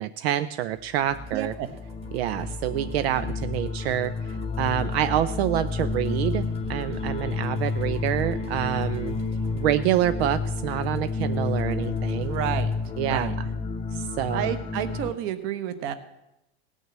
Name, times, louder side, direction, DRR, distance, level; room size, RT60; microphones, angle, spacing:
voice 1, 0.0-1.5 2.1-9.2 9.6-12.4 13.0-13.5 13.9-14.5, right 12 dB, 70° right, 12 dB, 0.6 m, -27 dB
sound 1, 1.0-15.1, left 4 dB, 15° left, 0.8 m, -30 dB
Musical instrument, 1.0-13.0, right 2 dB, 20° right, 1.4 m, -45 dB
voice 2, 1.3-1.7 12.3-12.7 13.0-13.3 14.3-15.9, right 10 dB, 40° right, 12 dB, 1.1 m, -30 dB
17.5 x 6.4 x 7.4 m, 0.89 s
supercardioid pair, 160°, 32 cm